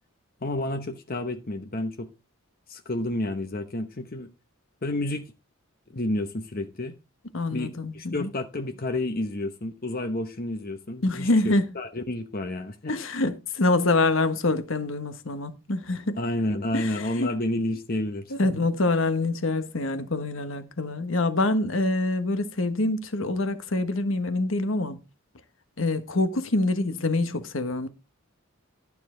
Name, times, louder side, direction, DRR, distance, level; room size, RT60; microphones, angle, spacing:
voice 1, 0.4-2.1 2.7-4.3 4.8-5.2 5.9-6.9 7.5-12.9 16.2-18.3, left 1 dB, 40° left, 0.9 m, -30 dB
voice 2, 7.3-8.3 11.0-11.6 12.9-16.2 16.7-17.3 18.3-25.0 25.8-27.9, left 2 dB, 60° left, 1.2 m, -25 dB
12.0 x 7.2 x 3.8 m
head